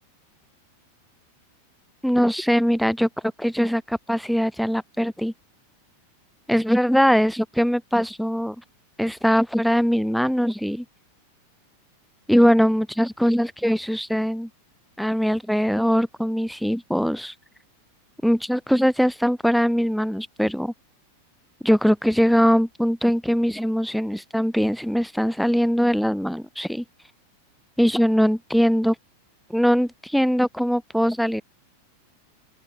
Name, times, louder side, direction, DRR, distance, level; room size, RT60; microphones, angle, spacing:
voice 1, 2.0-3.1 3.4-5.3 6.5-8.6 9.0-10.8 12.3-14.5 15.0-17.3 18.2-20.7 21.6-26.8 27.8-29.0 29.5-31.4, equal, ahead, 2.4 m, -21 dB
open air
figure-of-eight pair, 90°, 0 cm